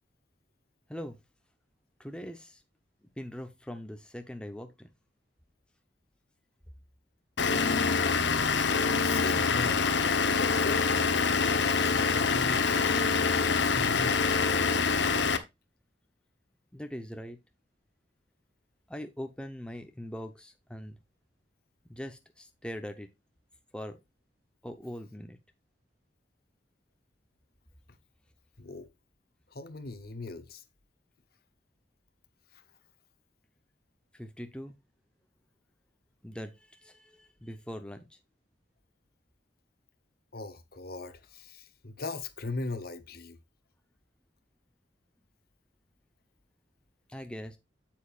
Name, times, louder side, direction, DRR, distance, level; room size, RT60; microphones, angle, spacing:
voice 1, 2.0-2.6 3.2-4.9 16.7-17.4 18.9-21.0 21.9-23.1 23.7-24.0 24.6-25.4 34.1-34.7 36.2-38.1 47.1-47.6, equal, 5° left, 0.8 m, -41 dB
Vehicle / Engine, 7.4-15.4, left 5 dB, 80° left, 1.0 m, -25 dB
voice 2, 9.0-9.8 10.4-13.1 13.6-14.4 28.6-28.9 29.5-30.6 32.5-32.6 40.3-43.4, left 3 dB, 55° left, 1.0 m, -39 dB
8.4 x 7.5 x 2.4 m
head